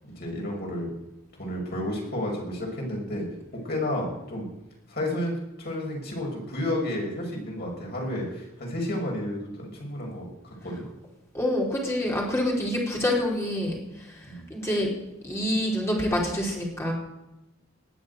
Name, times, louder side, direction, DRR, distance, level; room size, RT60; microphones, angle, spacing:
voice 1, 0.2-0.9 1.4-3.3 3.6-4.5 4.9-10.8 14.2-14.5, left 1 dB, 50° left, -1 dB, 5.9 m, -31 dB
voice 2, 11.3-13.8 14.0-14.1 14.5-14.9 15.2-16.9, left 1 dB, 15° left, -3 dB, 4.6 m, -26 dB
20.0 x 7.9 x 8.2 m, 0.93 s
head